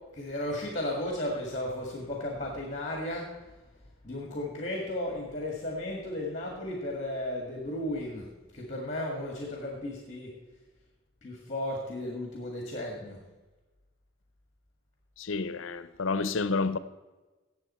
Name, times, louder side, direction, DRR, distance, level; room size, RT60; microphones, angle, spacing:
voice 1, 0.1-3.5 4.0-10.3 11.2-13.2, left 1 dB, 35° left, 1.9 m, -34 dB
voice 2, 15.2-16.8, left 4 dB, 75° left, 0.6 m, -29 dB
17.5 x 7.1 x 4.3 m
head